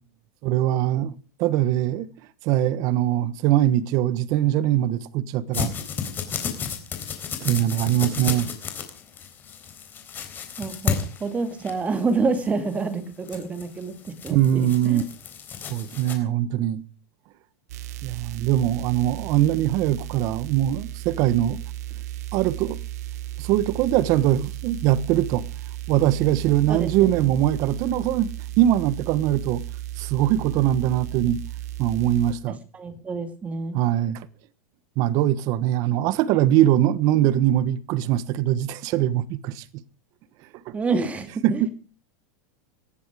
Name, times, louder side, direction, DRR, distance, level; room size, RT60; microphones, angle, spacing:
voice 1, 0.4-1.1 1.4-2.1 2.4-5.7 7.4-8.5 14.3-15.0 15.7-16.8 18.0-21.6 22.3-22.8 23.4-25.5 25.9-29.6 30.0-31.4 31.8-32.6 33.7-34.3 35.0-39.6 40.7-40.8 41.4-41.7, right 12 dB, 40° right, 1.2 m, -22 dB
sound 1, 5.5-16.1, left 7 dB, 20° left, 3.9 m, -32 dB
voice 2, 10.6-14.0 14.2-15.1 26.7-27.3 32.7-33.8 40.7-41.6, right 4 dB, 15° right, 2.4 m, -28 dB
sound 2, 17.7-32.3, right 14 dB, 70° right, 1.3 m, -35 dB
19.0 x 14.5 x 4.9 m
supercardioid pair, 150°, 9 cm